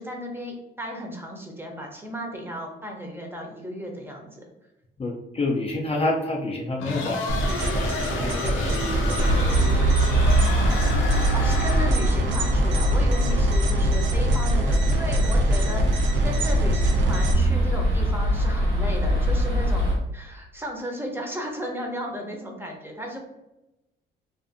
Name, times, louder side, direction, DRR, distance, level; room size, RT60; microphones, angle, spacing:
voice 1, 0.0-4.4 11.1-23.2, equal, 10° right, 1 dB, 0.6 m, -34 dB
voice 2, 5.0-10.3, left 2 dB, 30° left, -1 dB, 0.4 m, -30 dB
sound 1, 6.8-12.2, left 3 dB, 85° left, 0.5 m, -31 dB
sound 2, 7.3-17.3, right 2 dB, 70° right, 0.5 m, -26 dB
sound 3, 9.2-19.9, equal, 85° right, 1.3 m, -22 dB
2.5 x 2.5 x 2.5 m, 0.93 s
cardioid pair, 90°, 20 cm